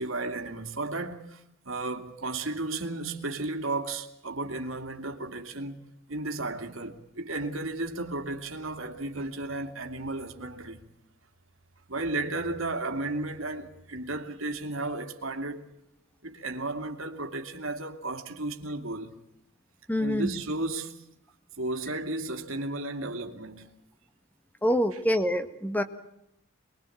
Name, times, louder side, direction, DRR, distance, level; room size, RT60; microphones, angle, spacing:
voice 1, 0.0-5.8 6.1-10.8 11.9-15.7 16.2-19.2 20.0-21.0 21.6-23.7, right 2 dB, 70° right, 2.5 m, -34 dB
voice 2, 19.9-20.3 24.6-25.8, equal, 10° left, 1.6 m, -25 dB
24.5 x 22.0 x 8.5 m
head